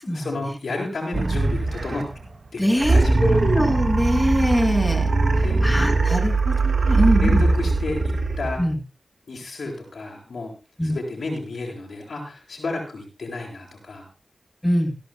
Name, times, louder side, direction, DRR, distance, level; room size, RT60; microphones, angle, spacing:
voice 1, 0.0-2.1 2.5-3.4 5.4-5.6 6.9-8.6 9.3-10.5 10.8-14.1, left 2 dB, 85° left, 0 dB, 7.8 m, -32 dB
sound 1, 1.1-2.3 2.8-8.7, right 3 dB, 60° right, 1.8 m, -21 dB
voice 2, 2.6-5.1 5.6-7.4 8.6-8.8 10.8-10.9 14.6-14.9, equal, 10° left, 1 dB, 6.2 m, -22 dB
28.5 x 11.5 x 2.4 m, 0.31 s
wide cardioid pair, 65°, 0 cm